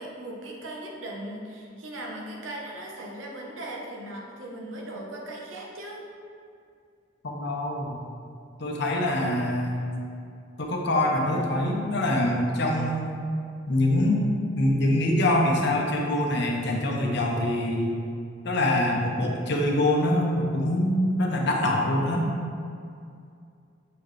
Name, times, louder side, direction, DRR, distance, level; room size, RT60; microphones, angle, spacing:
voice 1, 0.0-6.1, right 1 dB, 90° right, -1 dB, 1.0 m, -38 dB
voice 2, 7.2-8.0 8.6-10.0 10.6-13.1 13.7-14.2 14.5-18.0 18.4-22.3, left 1 dB, 60° left, 0 dB, 0.8 m, -24 dB
6.7 x 4.3 x 3.3 m, 2.4 s
head